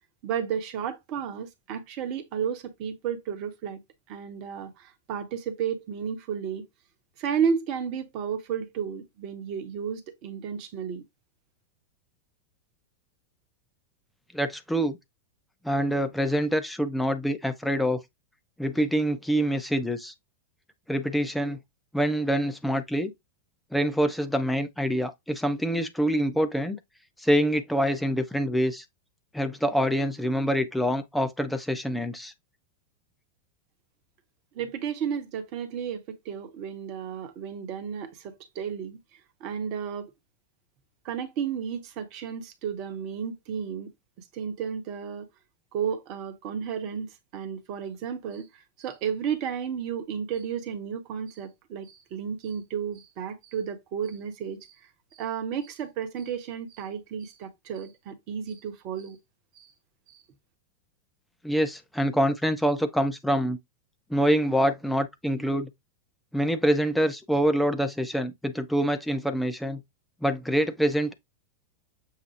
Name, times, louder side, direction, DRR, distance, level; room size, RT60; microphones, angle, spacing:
voice 1, 0.2-3.8 4.1-6.7 7.2-11.0 34.5-39.0 39.4-40.1 41.0-43.9 44.3-45.3 45.7-54.7 55.1-59.2 59.6-59.7 60.1-60.2, right 7 dB, 40° right, 1.0 m, -32 dB
voice 2, 14.3-15.0 15.6-18.0 18.6-20.1 20.9-21.6 21.9-23.1 23.7-26.8 27.2-28.8 29.3-32.3 61.4-63.6 64.1-65.7 66.3-69.8 70.2-71.1, equal, 5° left, 0.7 m, -25 dB
6.6 x 2.2 x 3.0 m
figure-of-eight pair, 90°, 0 cm